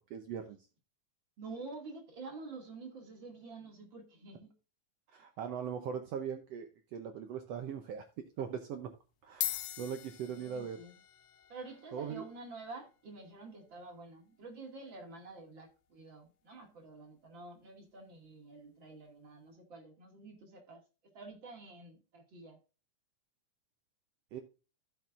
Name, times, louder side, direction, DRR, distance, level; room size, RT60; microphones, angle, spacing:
voice 1, 0.1-0.7 5.1-8.9 9.2-10.8 11.9-12.2 24.3-24.4, right 7 dB, 75° right, 1.5 m, -40 dB
voice 2, 1.4-4.5 10.2-10.9 11.5-22.6, right 3 dB, 40° right, 2.5 m, -49 dB
sound 1, 7.8-8.1 8.9-9.0 9.3-17.9, left 14 dB, 90° left, 2.3 m, -46 dB
15.5 x 6.0 x 2.5 m
omnidirectional pair, 3.6 m